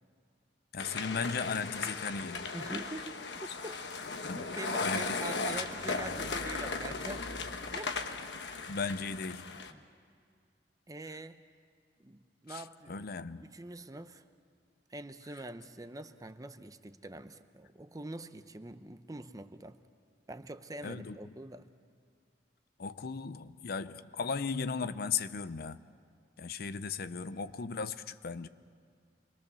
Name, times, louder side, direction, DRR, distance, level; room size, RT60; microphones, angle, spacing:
voice 1, 0.7-2.5 4.3-4.5 4.8-5.2 8.7-9.6 12.5-13.5 20.8-21.3 22.8-25.8 26.4-28.5, left 5 dB, 60° left, 13 dB, 0.6 m, -36 dB
sound 1, 0.8-9.7, left 4 dB, 75° left, 1.2 m, -37 dB
voice 2, 2.5-3.9 4.3-7.4 7.7-8.0 9.7-9.8 10.9-11.4 12.0-13.0 13.4-14.2 14.9-19.8 20.3-21.7, right 2 dB, 20° right, 10 dB, 0.7 m, -44 dB
27.0 x 22.0 x 6.9 m, 2.2 s
head